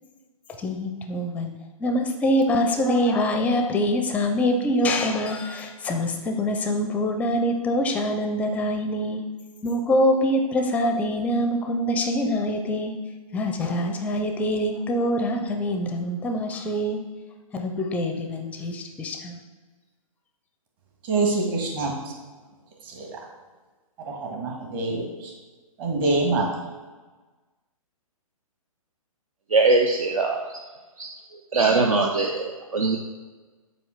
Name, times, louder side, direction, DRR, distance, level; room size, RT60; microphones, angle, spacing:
voice 1, 0.6-9.2 9.6-13.0 13.3-17.0 17.5-19.4, equal, 10° left, 4 dB, 0.5 m, -24 dB
voice 2, 21.1-21.9 23.0-23.1 24.1-25.1 25.8-26.5, right 3 dB, 35° right, 0 dB, 1.7 m, -24 dB
voice 3, 29.5-30.4 31.5-32.4 32.7-33.0, right 3 dB, 65° right, 1 dB, 0.7 m, -20 dB
7.8 x 2.8 x 5.6 m, 1.3 s
figure-of-eight pair, 130°, 19 cm